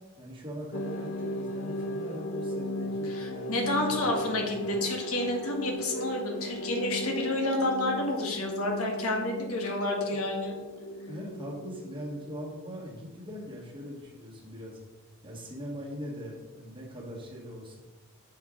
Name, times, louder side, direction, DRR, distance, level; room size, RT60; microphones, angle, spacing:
voice 1, 0.2-4.8 10.1-10.2 11.1-14.8 15.2-17.8, equal, 25° right, -3 dB, 1.4 m, -41 dB
sound 1, 0.7-12.5, left 1 dB, 70° left, 0.5 m, -36 dB
voice 2, 3.1-10.5, left 1 dB, 85° left, 1 dB, 1.5 m, -30 dB
6.6 x 4.5 x 4.9 m, 1.2 s
head